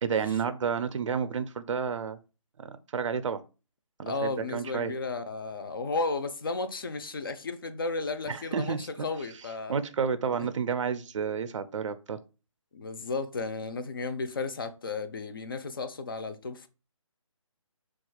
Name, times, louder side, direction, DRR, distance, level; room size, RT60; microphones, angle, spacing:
voice 1, 0.0-2.2 2.6-3.4 4.0-4.9 8.3-9.1 9.7-12.2, right 6 dB, 65° right, 0.4 m, -30 dB
voice 2, 4.0-9.8 12.7-16.7, left 3 dB, 40° left, 0.4 m, -34 dB
4.1 x 2.4 x 2.3 m
figure-of-eight pair, 165°, 17 cm